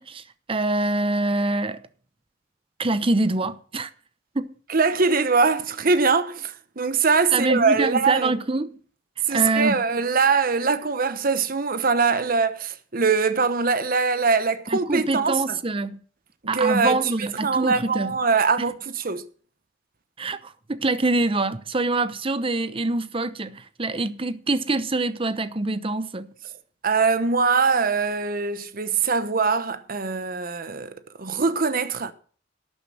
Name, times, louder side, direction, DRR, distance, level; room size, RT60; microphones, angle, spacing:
voice 1, 0.0-1.8 2.8-3.9 4.3-4.5 7.3-8.8 9.3-9.8 14.7-16.0 16.5-18.2 20.2-26.3, right 2 dB, 30° right, 0.8 m, -25 dB
voice 2, 4.7-8.4 9.3-15.4 16.5-17.0 17.4-18.7 19.0-19.2 26.8-30.9 31.2-32.1, right 4 dB, 50° right, 1.0 m, -22 dB
12.0 x 9.0 x 6.2 m
head